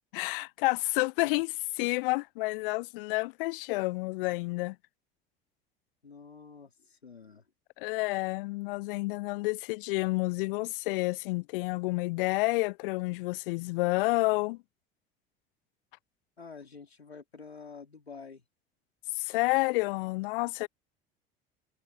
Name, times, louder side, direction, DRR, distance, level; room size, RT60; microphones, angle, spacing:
voice 1, 0.1-1.5 1.8-4.8 7.8-14.6 19.2-20.7, left 24 dB, 60° left, 0.7 m, -29 dB
voice 2, 6.0-7.5 16.4-18.4, left 5 dB, 85° left, 3.8 m, -48 dB
figure-of-eight pair, 65°, 31 cm